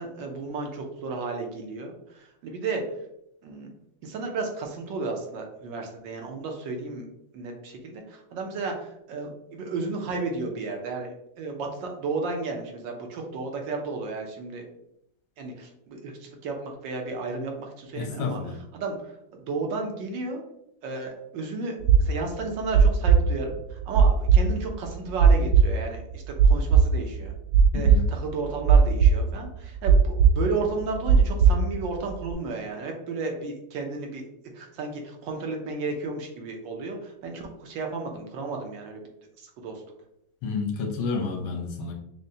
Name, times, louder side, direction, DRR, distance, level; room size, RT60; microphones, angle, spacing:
voice 1, 0.0-2.8 3.4-3.7 4.0-7.1 7.3-14.7 15.4-18.4 18.7-20.4 20.8-27.3 27.7-34.3 34.5-39.0 39.4-39.8, right 3 dB, 70° right, 2 dB, 1.3 m, -33 dB
voice 2, 17.9-18.5 27.7-28.0 40.4-41.9, left 4 dB, 90° left, 3 dB, 1.6 m, -30 dB
sound 1, 21.8-30.4 30.7-32.3, right 6 dB, 90° right, 1.5 m, -18 dB
6.4 x 2.1 x 2.7 m, 0.78 s
omnidirectional pair, 2.2 m